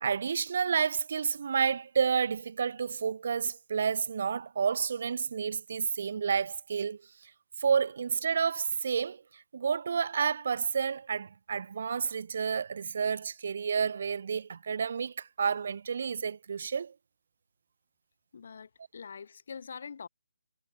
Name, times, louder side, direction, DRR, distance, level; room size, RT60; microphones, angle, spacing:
voice 1, 0.0-7.3 7.6-16.9, right 6 dB, 50° right, 0.6 m, -30 dB
voice 2, 18.3-20.1, left 6 dB, 55° left, 2.8 m, -44 dB
figure-of-eight pair, 150°, 0 cm